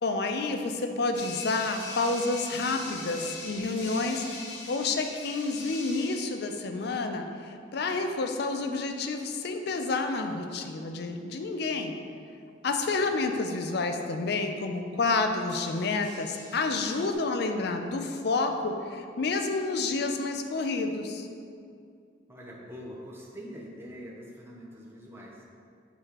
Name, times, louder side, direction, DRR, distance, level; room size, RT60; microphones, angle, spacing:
voice 1, 0.0-4.4 4.7-12.0 12.6-21.3, left 3 dB, 60° left, 6 dB, 0.5 m, -29 dB
sound 1, 1.1-6.5 10.0-10.3 15.5-17.1, left 3 dB, 80° left, 0.9 m, -42 dB
voice 2, 22.3-25.4, equal, 15° right, -4 dB, 0.7 m, -44 dB
6.8 x 4.8 x 2.9 m, 2.3 s
head